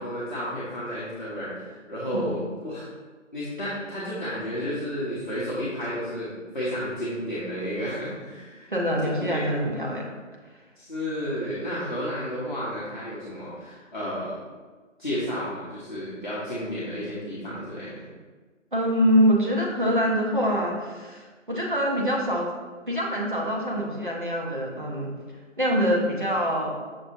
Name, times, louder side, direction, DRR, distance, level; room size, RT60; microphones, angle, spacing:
voice 1, 0.0-2.9 3.3-8.7 9.0-9.5 10.8-14.4 15.0-18.1, equal, 40° left, -10 dB, 0.7 m, -32 dB
voice 2, 8.7-10.1 18.7-22.5 22.8-25.1 25.6-26.8, equal, 40° right, -2 dB, 0.6 m, -24 dB
5.9 x 2.6 x 2.6 m, 1.4 s
figure-of-eight pair, 180°, 39 cm